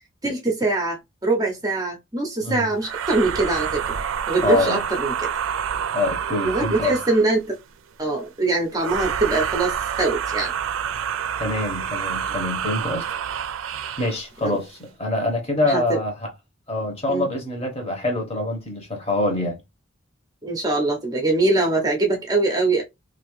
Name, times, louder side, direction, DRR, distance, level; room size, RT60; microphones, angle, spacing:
voice 1, 0.2-4.0 4.3-5.3 6.4-7.5 8.0-10.5 14.4-14.6 15.6-16.0 17.1-17.3 20.4-22.8, right 2 dB, 20° right, 0.6 m, -23 dB
sound 1, 2.8-7.4 8.7-14.2, right 8 dB, 80° right, 0.4 m, -28 dB
voice 2, 4.4-4.8 5.9-7.0 11.4-13.1 14.0-16.3 16.7-19.6, left 2 dB, 30° left, 1.0 m, -25 dB
2.7 x 2.6 x 3.0 m
head